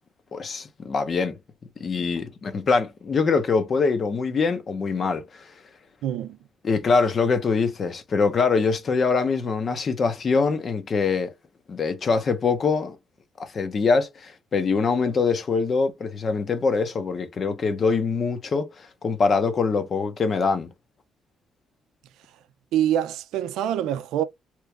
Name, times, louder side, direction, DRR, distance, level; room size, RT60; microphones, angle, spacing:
voice 1, 0.3-1.4 1.8-5.2 6.6-11.3 11.7-13.0 13.4-20.7, left 4 dB, 40° left, 0.7 m, -23 dB
voice 2, 6.0-6.4 22.7-24.2, right 11 dB, 90° right, 0.3 m, -25 dB
3.0 x 2.4 x 3.2 m
cardioid pair, 110°, 0 cm